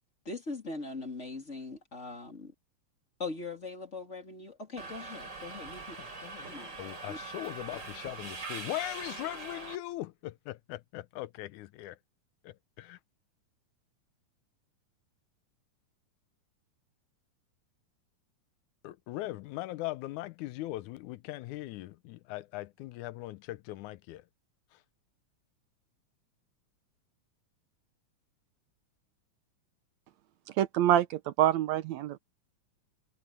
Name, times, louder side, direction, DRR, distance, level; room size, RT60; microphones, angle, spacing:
voice 1, 0.3-2.5 3.2-6.0 6.5-6.8 7.1-7.2, left 3 dB, 25° left, 3.4 m, -41 dB
Subway metro underground, 4.8-9.8, right 3 dB, 35° right, 4.7 m, -42 dB
voice 2, 6.0-12.0 12.4-13.0 18.8-24.2, left 16 dB, 85° left, 2.1 m, -40 dB
voice 3, 30.5-32.2, right 12 dB, 75° right, 1.9 m, -26 dB
omnidirectional pair, 3.5 m